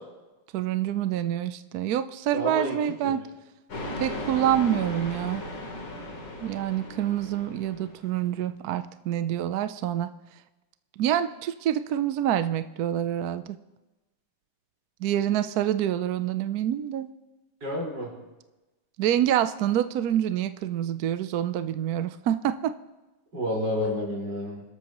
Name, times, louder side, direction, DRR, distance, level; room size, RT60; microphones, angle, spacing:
voice 1, 0.5-3.2 4.0-5.4 6.4-10.1 11.0-13.6 15.0-17.1 19.0-22.7, right 11 dB, 75° right, 11 dB, 0.8 m, -27 dB
voice 2, 2.3-2.8 17.6-18.1 23.3-24.6, left 1 dB, 55° right, -3 dB, 5.3 m, -29 dB
sound 1, 3.7-8.2, left 1 dB, 70° left, 4.1 m, -37 dB
28.0 x 13.0 x 3.0 m, 1.1 s
omnidirectional pair, 2.3 m